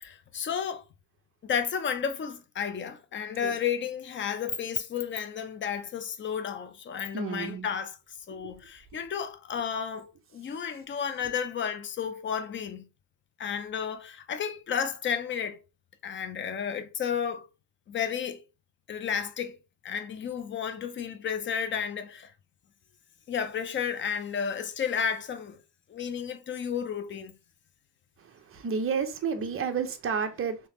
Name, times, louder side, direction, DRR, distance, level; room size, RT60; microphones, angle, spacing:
voice 1, 0.0-0.8 1.4-8.0 8.3-12.9 13.4-15.6 16.0-17.5 17.9-18.4 18.9-19.6 19.8-22.3 23.3-25.6 25.9-27.3, left 7 dB, 25° left, 0.4 m, -32 dB
voice 2, 7.1-7.7 8.3-8.4 28.2-30.6, right 6 dB, 30° right, 0.6 m, -31 dB
3.4 x 2.9 x 2.9 m
cardioid pair, 130°, 48 cm